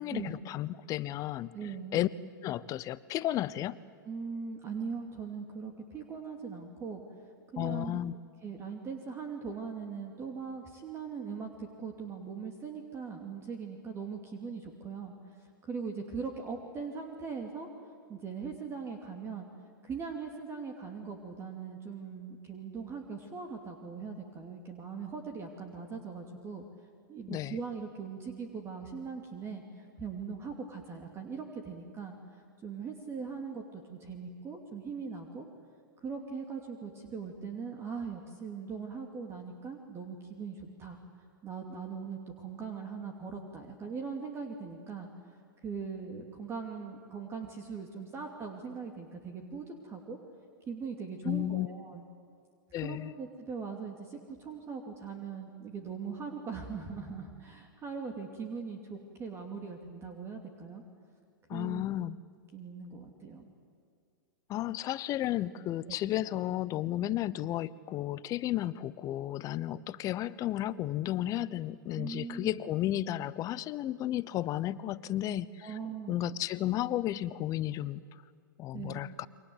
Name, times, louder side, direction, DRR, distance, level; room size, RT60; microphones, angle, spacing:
voice 1, 0.0-1.6 1.9-2.1 2.4-3.8 7.6-8.1 27.3-27.6 51.2-51.7 52.7-53.1 61.5-62.2 64.5-75.7 76.1-78.0 78.6-79.3, left 13 dB, 30° left, 18 dB, 0.8 m, -33 dB
voice 2, 1.5-2.0 4.0-7.0 7.5-8.0 8.4-15.1 15.4-17.7 18.1-19.5 19.8-26.6 27.1-35.5 36.0-41.0 41.4-45.1 45.6-50.2 50.7-52.0 52.8-60.8 61.5-61.9 62.5-63.5 65.9-66.0 71.9-72.6 75.6-76.2 78.7-79.0, right 5 dB, 20° right, 4 dB, 2.8 m, -40 dB
29.0 x 24.5 x 8.1 m, 2.2 s
hypercardioid pair, 110°, 11 cm